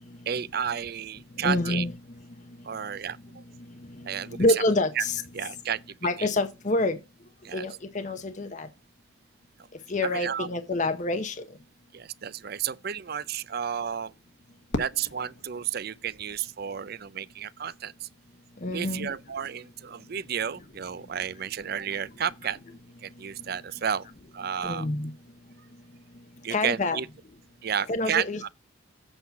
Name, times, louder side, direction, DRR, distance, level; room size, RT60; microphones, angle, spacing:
voice 1, 0.3-1.9 2.6-3.4 4.0-4.6 5.0-5.1 5.3-5.8 6.2-6.3 7.4-7.7 10.0-10.5 11.9-14.1 14.7-18.1 18.7-22.6 23.0-24.1 24.3-24.9 26.4-27.1 27.6-28.5, right 8 dB, 50° right, 0.5 m, -32 dB
voice 2, 1.4-1.9 4.3-5.2 6.0-7.0 7.5-8.7 9.9-11.4 18.6-19.1 24.6-25.1 26.5-27.0 27.9-28.5, left 2 dB, 35° left, 0.7 m, -27 dB
Fireworks, 14.7-16.9, left 1 dB, 60° left, 1.3 m, -38 dB
8.1 x 5.5 x 5.8 m
head